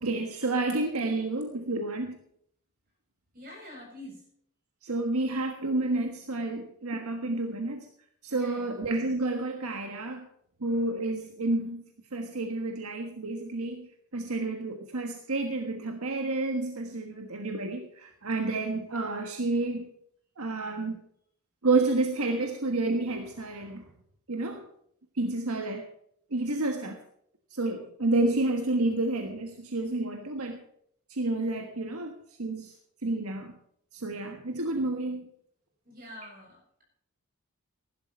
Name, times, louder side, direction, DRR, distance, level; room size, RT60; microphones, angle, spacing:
voice 1, 0.0-2.2 4.8-7.9 8.2-10.3 10.6-11.8 12.1-19.9 20.4-21.0 21.6-23.8 24.3-24.6 25.1-25.8 26.3-27.0 27.5-30.6 31.1-32.1 32.4-32.7 33.0-33.5 33.9-35.3, right 2 dB, 75° right, 4 dB, 1.5 m, -30 dB
voice 2, 3.3-4.2 8.3-8.7 35.8-36.8, left 1 dB, 40° right, -1 dB, 7.8 m, -46 dB
15.5 x 12.0 x 4.5 m, 0.69 s
head